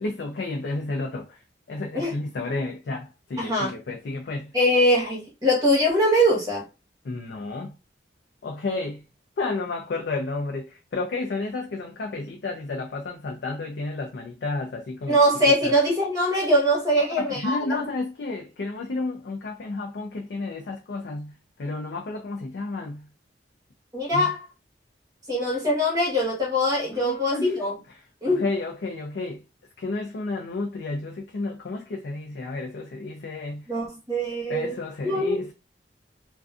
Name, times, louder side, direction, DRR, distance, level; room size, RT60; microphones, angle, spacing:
voice 1, 0.0-1.4 1.7-4.5 7.0-7.7 8.4-9.0 9.4-15.2 15.5-15.7 17.0-21.3 21.6-23.1 24.1-24.3 26.9-27.6 27.9-29.4 29.8-33.7 34.5-35.5, left 3 dB, 70° left, 0.4 m, -31 dB
voice 2, 3.4-3.7 4.5-6.6 15.1-17.8 23.9-24.4 25.3-27.7 28.2-28.4 33.7-34.7 35.0-35.4, equal, 20° right, 1.1 m, -22 dB
2.5 x 2.2 x 2.4 m
head